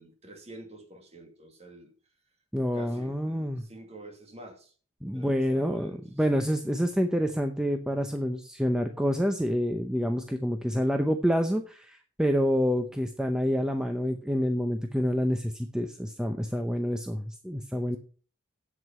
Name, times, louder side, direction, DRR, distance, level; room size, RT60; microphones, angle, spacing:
voice 1, 0.0-1.9 2.7-4.7 5.1-6.1 6.3-6.5 17.7-18.0, right 2 dB, 30° right, 2.2 m, -48 dB
voice 2, 2.5-3.6 5.0-18.0, equal, 5° right, 0.7 m, -28 dB
8.1 x 7.8 x 5.6 m
head